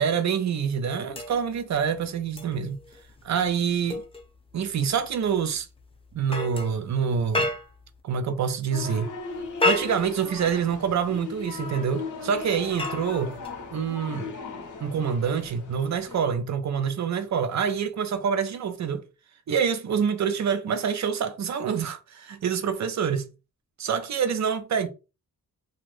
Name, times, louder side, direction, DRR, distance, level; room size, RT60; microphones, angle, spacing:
voice 1, 0.0-2.8 3.2-4.0 4.5-5.7 6.1-7.5 8.0-9.1 9.6-13.3 13.7-14.3 14.8-19.0 19.5-23.3 23.8-24.9, right 7 dB, 55° right, 0.5 m, -26 dB
sound 1, 1.1-8.0 9.3-10.9 12.3-13.9 15.4-15.6, left 2 dB, 15° left, 0.6 m, -33 dB
sound 2, 8.7-16.2, left 4 dB, 60° left, 0.7 m, -38 dB
2.5 x 2.4 x 3.2 m
wide cardioid pair, 125°, 34 cm